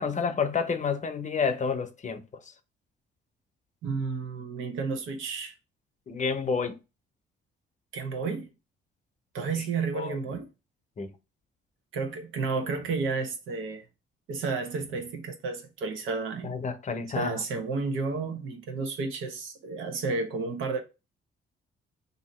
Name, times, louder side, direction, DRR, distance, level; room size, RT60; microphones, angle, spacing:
voice 1, 0.0-2.2 6.1-6.8 9.9-10.2 11.0-11.1 16.4-17.4, left 5 dB, 40° left, 0.7 m, -29 dB
voice 2, 3.8-5.5 7.9-8.5 9.3-10.5 11.9-13.9 14.3-16.5 17.1-20.8, right 4 dB, 85° right, 1.0 m, -31 dB
2.8 x 2.7 x 4.2 m
cardioid pair, 90°, 20 cm